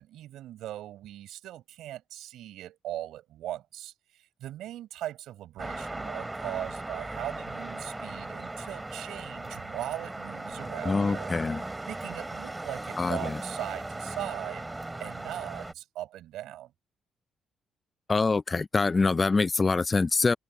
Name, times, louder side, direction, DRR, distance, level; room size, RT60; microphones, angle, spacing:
voice 1, 0.0-11.4 11.9-14.7 15.0-16.7, right 13 dB, 85° right, 4.8 m, -39 dB
sound 1, 5.6-15.7, right 2 dB, 15° right, 2.5 m, -38 dB
voice 2, 10.9-11.6 13.0-13.4 18.1-20.3, left 4 dB, 30° left, 0.4 m, -25 dB
cardioid pair, 90°, 0 cm